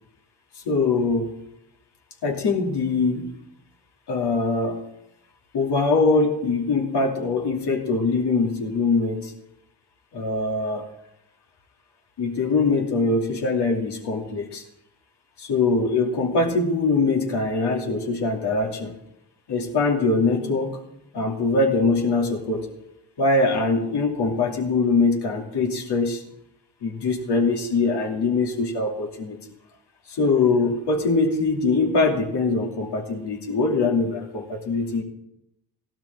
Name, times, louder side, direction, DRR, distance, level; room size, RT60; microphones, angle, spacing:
voice 1, 0.6-1.3 2.2-3.4 4.1-4.8 5.5-9.3 10.1-10.9 12.2-14.6 15.4-18.9 19.5-20.8 21.1-22.7 23.2-26.2 26.8-29.4 30.1-35.0, left 3 dB, 65° left, 0 dB, 2.7 m, -22 dB
16.0 x 12.0 x 3.6 m, 0.83 s
hypercardioid pair, 45°, 43 cm